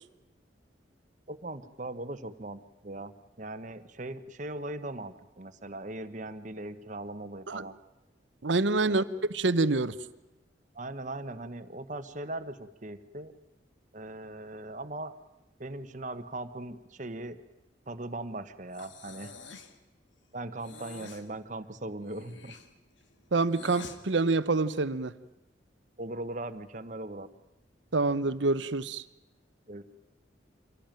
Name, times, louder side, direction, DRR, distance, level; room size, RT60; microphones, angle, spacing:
voice 1, 1.3-7.8 8.8-9.2 10.7-13.3 13.9-15.1 15.6-17.4 17.9-19.3 20.3-22.6 26.0-27.3 29.7-29.8, right 2 dB, 40° right, 10 dB, 1.2 m, -39 dB
voice 2, 8.4-9.0 9.3-9.9 23.3-25.1 27.9-29.0, right 3 dB, 80° right, 14 dB, 0.9 m, -26 dB
Breathing, 18.7-19.8 20.6-21.3 22.0-24.0, left 4 dB, 85° left, 1.9 m, -47 dB
25.0 x 17.0 x 9.1 m, 0.98 s
head